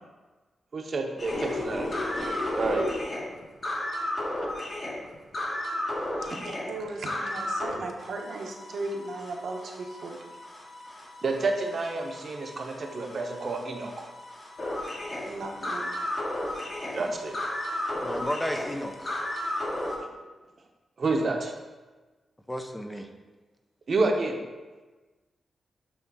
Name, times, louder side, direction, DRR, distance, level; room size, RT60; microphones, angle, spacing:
voice 1, 0.7-1.9 2.6-3.0 6.3-6.4 11.2-13.9 16.9-17.3 21.0-21.5 23.9-24.4, right 3 dB, 45° right, 0.9 m, -29 dB
sound 1, 1.2-7.7 8.0-20.0, left 1 dB, 40° left, 1.4 m, -34 dB
voice 2, 6.4-10.3 15.2-15.9, right 2 dB, 70° right, 1.0 m, -37 dB
voice 3, 18.0-19.3 22.5-23.1, equal, 5° left, 0.5 m, -33 dB
8.4 x 3.3 x 4.7 m
wide cardioid pair, 125°, 0 cm